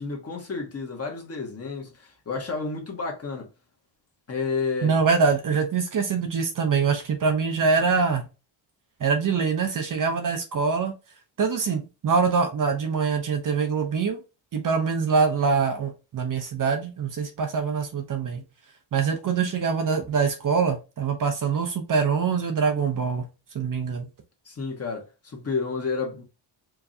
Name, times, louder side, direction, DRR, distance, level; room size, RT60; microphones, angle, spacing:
voice 1, 0.0-3.5 4.3-5.0 24.4-26.2, left 4 dB, 30° left, 1.4 m, -31 dB
voice 2, 4.8-8.3 9.0-10.9 11.4-14.2 14.5-18.4 18.9-23.3 23.5-24.1, right 5 dB, 40° right, 0.8 m, -24 dB
4.7 x 3.1 x 2.6 m
cardioid pair, 155°, 48 cm